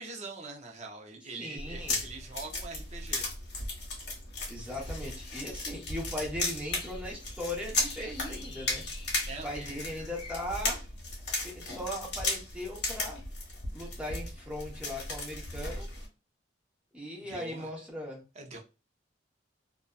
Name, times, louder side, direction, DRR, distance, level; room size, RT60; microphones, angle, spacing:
voice 1, 0.0-3.3 4.5-4.7 9.2-9.8 17.3-17.7 18.3-18.6, right 3 dB, 40° right, 0.5 m, -43 dB
voice 2, 1.4-2.0 4.5-8.8 9.4-10.8 11.4-13.2 13.7-15.9 16.9-18.2, left 1 dB, 5° right, 0.8 m, -38 dB
sound 1, 1.6-16.1, left 2 dB, 65° left, 1.0 m, -36 dB
sound 2, 4.7-10.6, left 3 dB, 30° left, 0.4 m, -50 dB
2.6 x 2.2 x 2.2 m
head